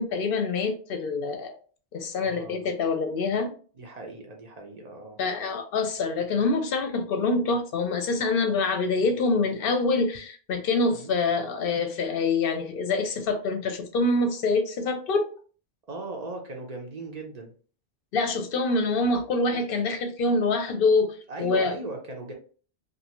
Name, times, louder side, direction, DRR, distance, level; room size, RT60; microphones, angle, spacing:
voice 1, 0.0-1.6 1.9-3.5 5.2-15.3 18.1-21.8, left 3 dB, 65° left, 0.7 m, -25 dB
voice 2, 2.2-2.7 3.8-5.2 10.9-11.1 15.8-17.5 21.3-22.3, right 2 dB, 45° right, 0.6 m, -38 dB
2.5 x 2.4 x 2.9 m
omnidirectional pair, 1.1 m